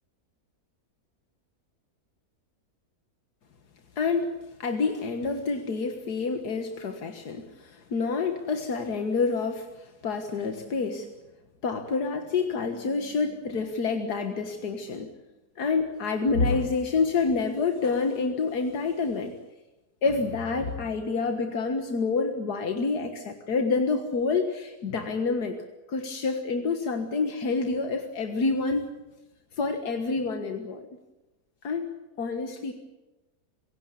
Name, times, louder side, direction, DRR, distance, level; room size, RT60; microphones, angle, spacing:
voice 1, 4.0-4.3 4.6-11.1 11.6-15.1 15.6-19.3 20.0-25.6 25.9-28.9 29.6-30.9 31.6-31.9 32.2-32.7, left 4 dB, 85° left, 6 dB, 2.1 m, -28 dB
27.0 x 16.5 x 8.4 m, 1.1 s
omnidirectional pair, 1.6 m